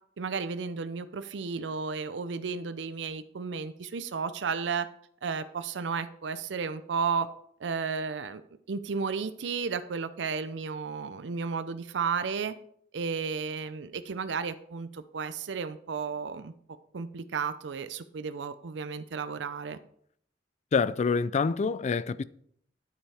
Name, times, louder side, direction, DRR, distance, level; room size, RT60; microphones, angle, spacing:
voice 1, 0.2-4.9 5.2-7.3 7.6-8.4 8.7-12.6 12.9-16.5 16.9-19.8, right 5 dB, 85° right, 0.5 m, -33 dB
voice 2, 20.7-22.2, left 5 dB, 40° left, 0.3 m, -26 dB
9.9 x 8.8 x 3.4 m
head